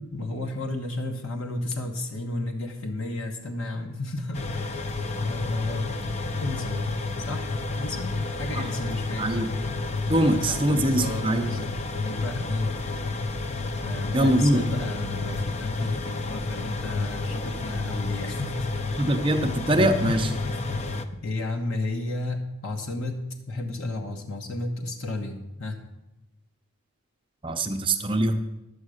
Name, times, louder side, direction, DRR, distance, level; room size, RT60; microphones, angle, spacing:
voice 1, 0.1-4.9 5.1-5.9 6.4-6.9 7.3-9.2 10.0-13.3 13.7-19.1 19.6-20.6 21.2-25.8, left 2 dB, 65° left, 3 dB, 1.2 m, -33 dB
sound 1, 4.3-21.0, left 3 dB, 30° left, 0.6 m, -30 dB
voice 2, 10.1-11.5 14.1-14.6 19.0-20.3 27.4-28.4, right 1 dB, 25° right, 4 dB, 0.6 m, -22 dB
11.0 x 8.1 x 6.4 m, 0.96 s
head